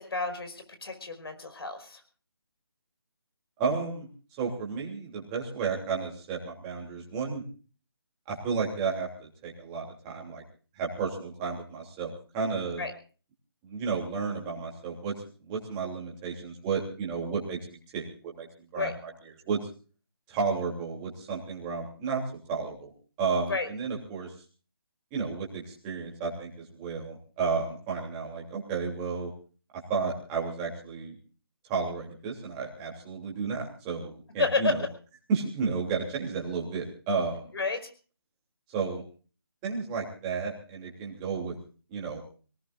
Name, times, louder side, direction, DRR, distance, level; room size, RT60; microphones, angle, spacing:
voice 1, 0.0-2.0 12.8-12.9 18.7-18.9 23.5-23.7 34.4-34.8 37.5-37.9, left 3 dB, 70° left, 7 dB, 5.3 m, -30 dB
voice 2, 3.6-7.4 8.3-10.4 10.8-12.8 13.6-15.1 15.5-18.5 18.7-19.6 20.3-22.2 22.5-22.9 23.2-24.3 25.1-29.3 29.9-31.2 31.7-34.8 35.3-37.5 38.7-39.0 39.6-41.5 41.9-42.2, right 5 dB, 15° right, -2 dB, 3.1 m, -32 dB
26.0 x 18.5 x 2.6 m, 0.38 s
hypercardioid pair, 175°, 13 cm